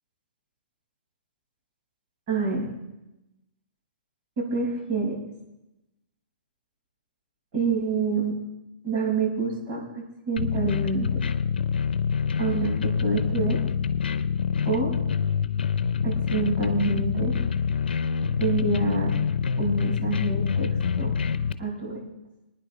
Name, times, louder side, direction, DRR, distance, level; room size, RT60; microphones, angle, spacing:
voice 1, 2.3-2.7 4.4-5.1 7.5-8.4 8.8-11.1 12.4-13.6 14.6-14.9 16.0-17.3 18.4-19.1 19.6-20.7 21.0-21.1 21.6-22.0, right 4 dB, 45° right, -4 dB, 5.9 m, -27 dB
sound 1, 10.4-21.5, left 6 dB, 75° left, 0.7 m, -26 dB
23.0 x 9.9 x 3.3 m, 0.95 s
hypercardioid pair, 130°, 5 cm